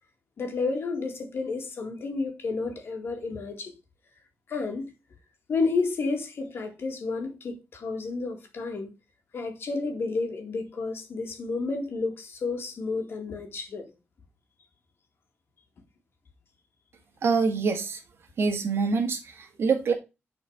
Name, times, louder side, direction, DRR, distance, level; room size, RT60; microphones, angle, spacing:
voice 1, 0.4-3.7 4.5-4.9 5.5-8.9 9.3-13.9, left 3 dB, 60° left, 2.0 m, -31 dB
voice 2, 17.2-18.0 18.4-19.9, right 5 dB, 60° right, 1.8 m, -25 dB
7.2 x 4.4 x 4.9 m
wide cardioid pair, 125°, 5 cm